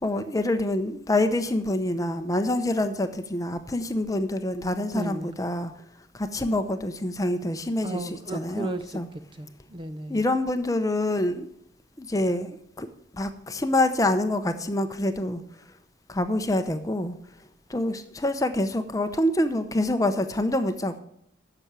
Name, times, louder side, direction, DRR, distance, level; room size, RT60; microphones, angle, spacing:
voice 1, 0.0-5.7 6.1-9.1 10.1-11.5 12.0-12.9 13.1-15.4 16.1-17.1 17.7-21.0, left 1 dB, 15° left, 9 dB, 0.7 m, -26 dB
voice 2, 4.9-5.3 7.8-9.0 9.4-10.2, right 2 dB, 25° right, 10 dB, 0.5 m, -34 dB
10.5 x 6.9 x 7.4 m, 0.72 s
head